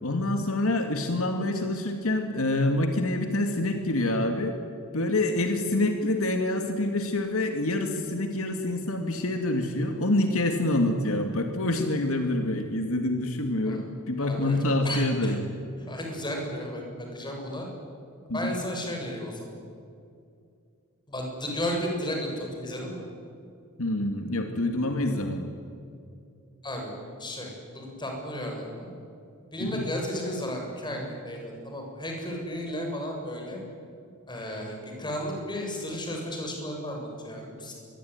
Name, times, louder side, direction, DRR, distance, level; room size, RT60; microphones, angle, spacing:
voice 1, 0.0-4.6 4.9-15.4 18.3-18.6 23.8-25.5 29.6-29.9, left 1 dB, 70° left, 5 dB, 2.5 m, -26 dB
voice 2, 14.2-14.6 14.8-15.3 15.8-16.8 17.1-17.7 18.3-19.5 21.1-23.1 26.6-26.9 27.2-28.9 29.5-33.6 34.3-37.7, left 1 dB, 20° left, 1 dB, 7.2 m, -34 dB
25.5 x 23.0 x 9.8 m, 2.4 s
head